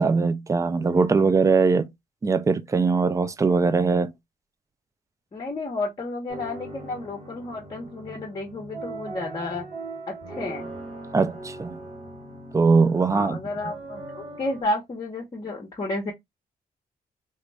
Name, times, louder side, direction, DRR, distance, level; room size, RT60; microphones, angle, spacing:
voice 1, 0.0-1.9 2.2-4.1 11.1-11.8 12.5-13.4, right 4 dB, 20° right, 0.4 m, -21 dB
voice 2, 5.3-9.6 10.1-10.7 13.0-16.1, left 2 dB, 30° left, 1.0 m, -31 dB
sound 1, 6.3-14.6, right 2 dB, 45° right, 2.1 m, -40 dB
3.1 x 2.4 x 3.3 m
cardioid pair, 115°, 16 cm